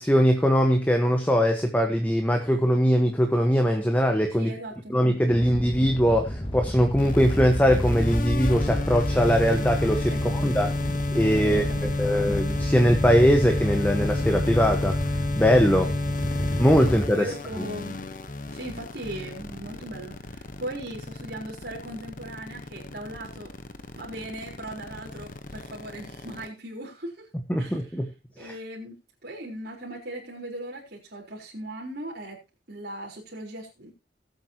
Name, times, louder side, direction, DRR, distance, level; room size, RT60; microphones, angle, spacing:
voice 1, 0.0-4.5 4.9-10.7 11.1-15.9 16.6-17.3 17.6-17.7 27.5-28.1 28.4-28.5, equal, 10° left, 4 dB, 1.2 m, -21 dB
voice 2, 4.4-5.0 10.1-10.6 11.4-12.1 15.8-16.1 17.1-18.0 18.5-23.5 23.9-27.3 27.6-28.0 28.4-32.4 32.7-33.9, right 1 dB, 55° right, -5 dB, 4.0 m, -38 dB
sound 1, 5.3-17.1, equal, 30° left, 1.8 m, -30 dB
sound 2, 7.0-26.5, left 2 dB, 45° left, 1.1 m, -31 dB
19.0 x 8.1 x 2.9 m, 0.26 s
head